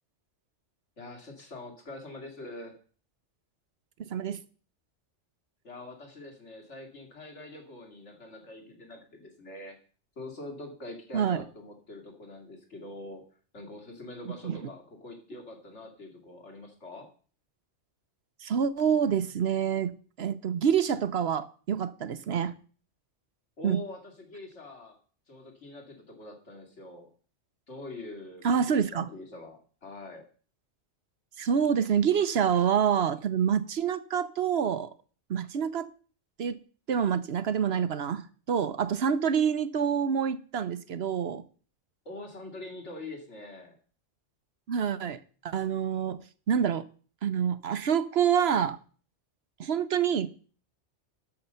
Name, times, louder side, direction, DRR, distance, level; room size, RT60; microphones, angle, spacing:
voice 1, 1.0-2.8 5.6-9.8 10.2-13.2 13.5-17.1 23.6-25.0 25.3-27.1 27.7-30.2 42.0-43.8, left 2 dB, 75° left, 2.9 m, -44 dB
voice 2, 4.0-4.4 11.1-11.4 14.4-14.6 18.4-19.9 20.2-22.5 23.6-23.8 28.4-29.1 31.4-34.9 35.3-35.9 36.4-36.6 36.9-41.4 44.7-46.2 46.5-46.8 47.2-48.8 49.6-50.3, right 7 dB, 60° right, 1.0 m, -27 dB
12.5 x 6.6 x 5.6 m
omnidirectional pair, 1.2 m